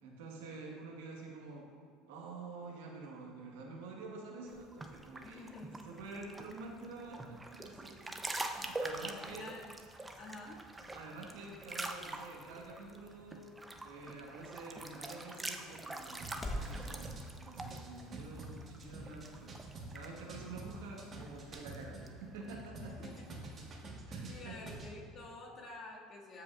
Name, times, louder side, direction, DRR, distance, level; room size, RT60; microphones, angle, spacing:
voice 1, 0.0-1.7 2.1-8.1 8.4-9.5 10.9-13.5 13.8-23.1 24.1-24.6, right 3 dB, 90° right, -1 dB, 1.3 m, -48 dB
sound 1, 4.5-22.7, right 2 dB, 15° right, 0.6 m, -46 dB
voice 2, 5.2-5.7 9.3-9.7 10.2-10.7 22.8-23.4 24.3-26.4, left 2 dB, 45° left, -4 dB, 1.9 m, -49 dB
sound 2, 10.5-16.8, left 1 dB, 20° left, 1.1 m, -49 dB
sound 3, 16.2-22.1 22.5-24.9, right 2 dB, 40° right, 1.2 m, -47 dB
13.0 x 5.2 x 2.4 m, 2.1 s
supercardioid pair, 100°, 0 cm